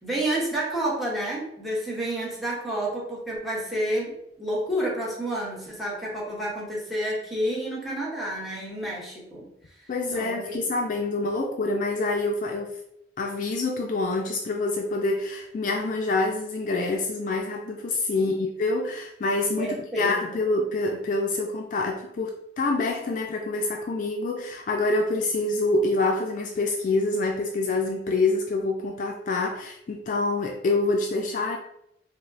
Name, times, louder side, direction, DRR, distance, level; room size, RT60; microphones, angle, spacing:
voice 1, 0.0-9.5 10.1-10.6 18.1-18.3 19.6-20.3, right 1 dB, ahead, -6 dB, 1.0 m, -30 dB
voice 2, 9.9-12.8 13.2-31.6, left 2 dB, 45° left, 2 dB, 0.3 m, -26 dB
4.9 x 2.0 x 2.6 m, 0.79 s
head